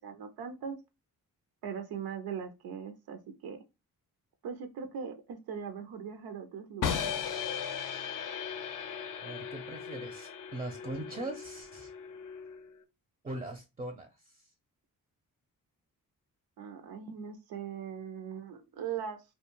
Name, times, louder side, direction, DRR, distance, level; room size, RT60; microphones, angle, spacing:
voice 1, 0.0-0.8 1.6-3.6 4.4-7.2 16.6-19.2, right 7 dB, 85° right, 7 dB, 0.5 m, -40 dB
sound 1, 6.8-12.8, left 7 dB, 60° left, 0.5 m, -37 dB
voice 2, 9.2-11.9 13.2-14.5, right 1 dB, 15° right, 5 dB, 0.5 m, -41 dB
2.4 x 2.2 x 2.9 m, 0.25 s
cardioid pair, 95°, 35 cm